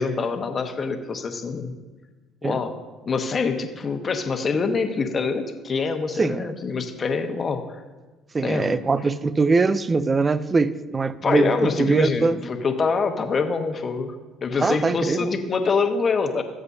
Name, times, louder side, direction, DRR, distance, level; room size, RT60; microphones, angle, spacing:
voice 1, 0.0-1.8 2.4-2.7 3.0-7.8 8.4-8.7 11.2-14.1 14.4-16.4, left 4 dB, 40° left, 1.2 m, -25 dB
voice 2, 8.3-12.5 14.6-15.3, right 4 dB, 30° right, 0.6 m, -22 dB
18.0 x 7.9 x 2.8 m
hypercardioid pair, 70°, 0 cm